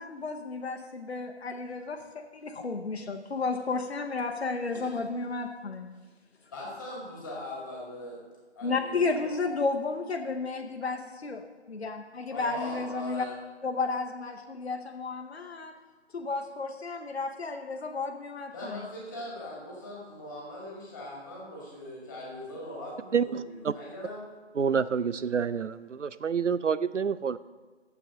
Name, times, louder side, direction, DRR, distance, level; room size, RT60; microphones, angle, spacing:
voice 1, 0.0-5.9 8.6-13.2 13.6-15.7 16.1-18.9, left 3 dB, 65° left, 3 dB, 0.8 m, -32 dB
voice 2, 6.5-8.2 8.6-9.4 12.3-13.3 18.5-24.2, left 1 dB, 15° left, -4 dB, 1.8 m, -40 dB
voice 3, 23.1-23.7 24.6-27.4, right 6 dB, 90° right, 15 dB, 0.5 m, -28 dB
7.0 x 6.8 x 7.4 m, 1.4 s
figure-of-eight pair, 155°, 35 cm